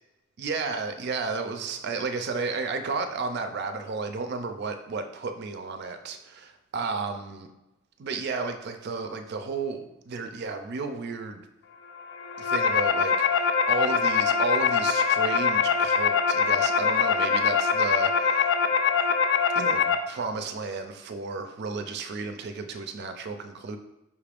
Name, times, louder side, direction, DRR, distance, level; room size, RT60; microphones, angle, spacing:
voice 1, 0.4-7.5 8.0-11.5 12.4-18.4 19.6-23.8, right 4 dB, 55° right, 7 dB, 0.4 m, -32 dB
sound 1, 12.1-20.0, left 6 dB, 60° left, 0.3 m, -23 dB
5.3 x 2.4 x 3.4 m, 0.93 s
head